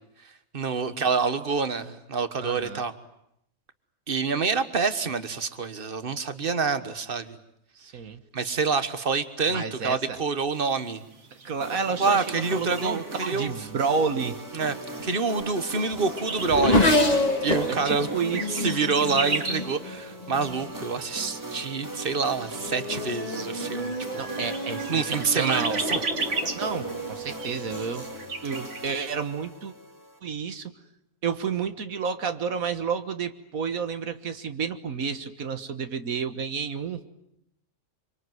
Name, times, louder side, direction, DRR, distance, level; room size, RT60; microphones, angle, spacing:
voice 1, 0.5-2.9 4.1-7.4 8.3-11.0 12.0-13.5 14.5-14.8 15.0-16.9 17.4-18.1 18.5-24.2 24.9-26.0, right 4 dB, 40° right, 11 dB, 1.6 m, -27 dB
voice 2, 2.4-2.8 7.8-8.2 9.5-10.2 11.4-14.4 17.7-18.7 24.2-25.8 26.5-28.1 28.4-29.7 30.2-30.7 31.2-37.0, right 6 dB, 85° right, 9 dB, 1.8 m, -30 dB
sound 1, 10.5-28.9, right 4 dB, 60° right, 2.1 m, -38 dB
sound 2, 11.6-30.2, right 1 dB, 15° right, 2.1 m, -39 dB
Race car auto racing / Accelerating revving vroom, 14.8-20.7 21.5-21.9 22.3-28.2, left 1 dB, 30° left, 2.2 m, -29 dB
25.5 x 25.0 x 9.4 m, 0.78 s
omnidirectional pair, 1.4 m